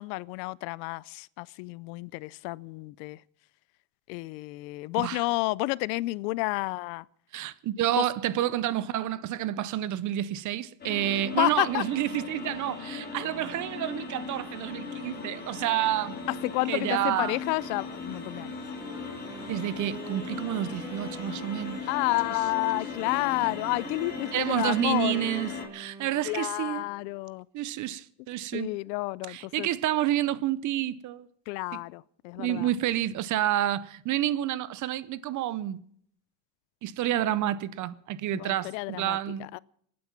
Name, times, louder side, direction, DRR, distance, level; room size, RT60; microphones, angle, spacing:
voice 1, 0.0-3.2 4.1-7.0 8.0-8.1 11.4-11.8 16.4-18.5 21.9-25.2 26.2-27.5 28.5-29.7 31.5-32.7 38.3-39.6, left 23 dB, 85° left, 0.6 m, -30 dB
voice 2, 7.3-16.2 16.7-17.4 19.5-21.8 24.3-26.9 27.5-28.7 29.3-31.3 31.7-31.8 32.4-35.8 36.8-39.5, right 13 dB, 40° right, 0.6 m, -29 dB
sound 1, 10.8-25.6, left 4 dB, 20° left, 3.1 m, -38 dB
Wind instrument woodwind instrument, 18.7-27.3, right 2 dB, 5° right, 2.4 m, -46 dB
25.0 x 9.5 x 5.9 m
cardioid pair, 135°, 49 cm